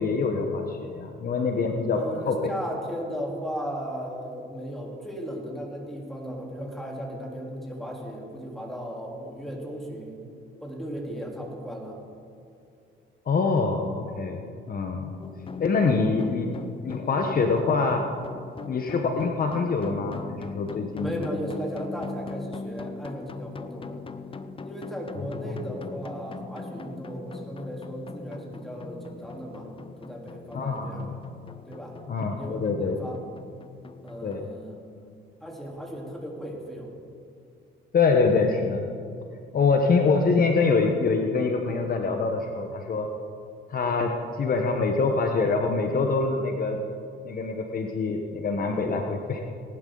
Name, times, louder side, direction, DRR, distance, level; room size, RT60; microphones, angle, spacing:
voice 1, 0.0-2.0 2.3-2.5 13.3-14.4 14.7-15.1 15.6-16.5 16.8-18.0 18.7-21.2 25.4-25.5 30.5-31.1 32.1-32.9 34.2-34.4 37.9-38.8 39.5-43.1 43.7-46.8 47.2-49.4, left 4 dB, 45° left, 3 dB, 1.1 m, -25 dB
voice 2, 1.9-10.2 10.6-12.0 21.0-24.0 24.6-29.7 30.0-31.1 31.7-31.9 32.4-33.2 34.0-35.0 35.4-36.9 39.5-39.7, equal, ahead, -2 dB, 3.5 m, -36 dB
sound 1, 15.2-34.4, left 4 dB, 25° left, 0.7 m, -40 dB
19.0 x 11.0 x 3.9 m, 2.5 s
cardioid pair, 90°, 21 cm